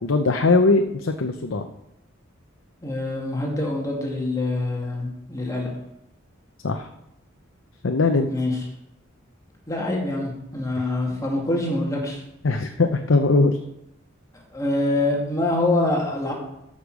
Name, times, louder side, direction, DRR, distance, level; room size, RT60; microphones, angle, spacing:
voice 1, 0.0-1.7 6.6-6.9 7.8-8.3 12.4-13.6, left 3 dB, 75° left, 5 dB, 0.7 m, -20 dB
voice 2, 2.8-5.7 8.3-8.6 9.7-12.2 14.5-16.3, left 2 dB, 15° left, -2 dB, 2.4 m, -25 dB
13.5 x 6.6 x 5.0 m, 0.84 s
head